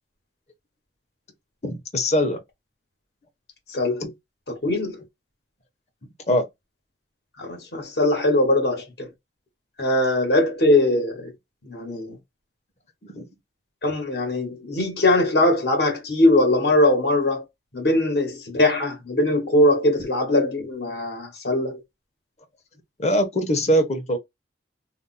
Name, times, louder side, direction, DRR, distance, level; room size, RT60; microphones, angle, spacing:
voice 1, 1.6-2.4 4.0-4.1 6.3-6.5 13.0-13.3 23.0-24.2, equal, 40° left, 0.7 m, -22 dB
voice 2, 3.7-4.0 4.5-5.0 7.4-9.1 9.8-11.3 11.6-12.2 13.8-17.4 17.7-21.8, left 1 dB, 70° left, 1.1 m, -21 dB
2.5 x 2.0 x 3.9 m
head